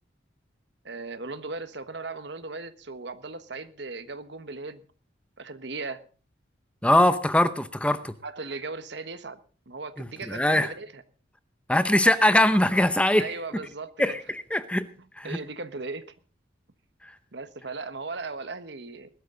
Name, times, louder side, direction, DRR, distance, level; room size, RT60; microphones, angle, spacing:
voice 1, 0.8-4.8 5.4-6.0 8.2-9.4 9.7-11.0 13.1-14.2 15.2-16.1 17.3-19.1, right 3 dB, 60° right, 12 dB, 1.3 m, -37 dB
voice 2, 6.8-8.1 10.0-10.7 11.7-13.3 14.0-14.9 15.2-15.4 17.0-17.1, left 1 dB, 5° left, 12 dB, 0.7 m, -22 dB
20.5 x 12.5 x 3.9 m, 0.37 s
head